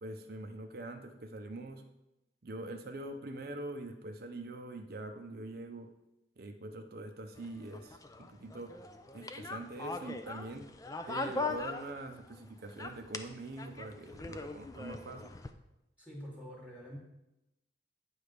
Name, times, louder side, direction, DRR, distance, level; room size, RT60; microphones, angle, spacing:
voice 1, 0.0-1.8 2.4-5.9 6.4-8.7 9.1-10.6 11.1-15.3, right 2 dB, 55° right, 5 dB, 0.6 m, -44 dB
sound 1, 7.4-12.4 12.7-15.5, left 3 dB, 20° left, 0.4 m, -41 dB
voice 2, 16.0-17.0, equal, 5° right, -3 dB, 1.4 m, -46 dB
8.8 x 3.5 x 6.6 m, 0.92 s
head